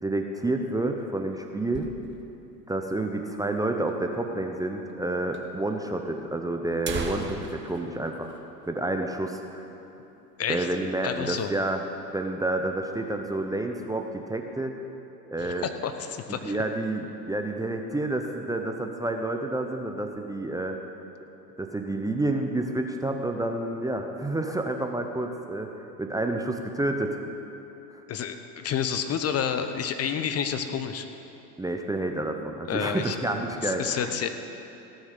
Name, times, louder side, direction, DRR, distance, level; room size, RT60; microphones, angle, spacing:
voice 1, 0.0-1.9 2.7-8.3 8.7-9.6 10.5-11.8 12.1-14.8 15.3-15.7 16.4-20.8 21.6-25.7 26.0-27.2 27.9-28.0 31.6-34.1, right 2 dB, 5° right, 3 dB, 0.7 m, -29 dB
sound 1, 0.7-2.5 2.8-2.9 3.1-3.2 3.9-4.0 4.9-5.0 5.3-5.4 6.2-6.3 6.6-9.2 9.5-9.7 10.1-10.3 10.8-11.3, right 4 dB, 20° right, 1.3 m, -39 dB
voice 2, 11.0-11.5 15.4-16.6 28.1-31.1 32.7-33.2 33.6-34.3, left 8 dB, 30° left, 8 dB, 0.8 m, -29 dB
17.0 x 6.3 x 6.6 m, 3.0 s
hypercardioid pair, 85°, 49 cm